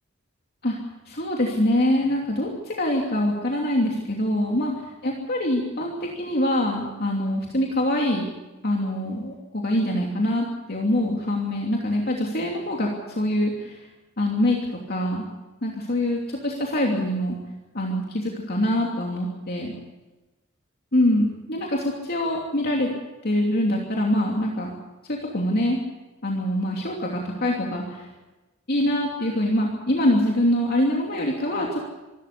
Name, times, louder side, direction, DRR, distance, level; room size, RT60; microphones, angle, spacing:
voice 1, 1.1-8.3 8.6-13.8 14.2-14.6 14.9-15.2 15.6-17.4 17.7-19.7 20.9-22.9 23.2-24.7 25.1-25.8 26.2-28.1 28.7-31.8, left 1 dB, 50° left, -1 dB, 2.9 m, -24 dB
25.5 x 13.0 x 8.4 m, 1.1 s
head